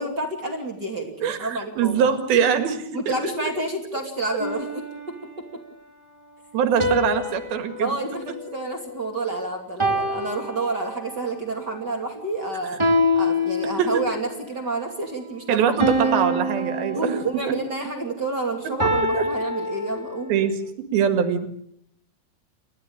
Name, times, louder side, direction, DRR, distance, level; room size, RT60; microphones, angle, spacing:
voice 1, 0.0-2.1 2.9-5.1 7.8-12.8 13.1-15.8 16.0-16.1 16.9-20.4, right 2 dB, 30° right, 2 dB, 2.9 m, -29 dB
voice 2, 1.2-3.1 6.5-8.0 12.6-12.8 13.8-14.0 15.5-17.6 18.6-18.7 19.1-19.3 20.3-20.6 20.9-21.5, right 7 dB, 85° right, 8 dB, 3.8 m, -23 dB
sound 1, 4.4-5.6 6.8-9.2 9.8-11.3 12.8-14.3 15.8-17.7 18.8-20.4, left 1 dB, 10° right, 1.8 m, -26 dB
30.0 x 13.5 x 8.7 m, 0.72 s
omnidirectional pair, 4.2 m